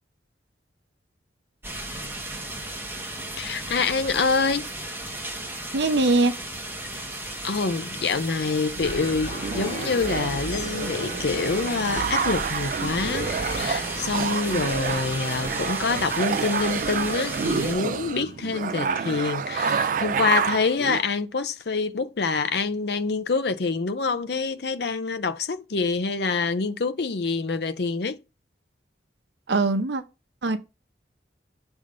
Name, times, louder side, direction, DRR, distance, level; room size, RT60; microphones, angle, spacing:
sound 1, 1.6-17.7, right 1 dB, 10° right, 1.2 m, -35 dB
voice 1, 3.4-4.7 7.4-28.2, left 4 dB, 65° left, 0.6 m, -26 dB
voice 2, 5.7-6.3 29.5-30.0 30.4-30.6, right 2 dB, 80° right, 0.8 m, -21 dB
sound 2, 8.8-15.7, left 1 dB, 85° left, 1.8 m, -37 dB
sound 3, 8.8-21.0, right 6 dB, 45° right, 0.3 m, -29 dB
6.7 x 3.5 x 5.1 m
head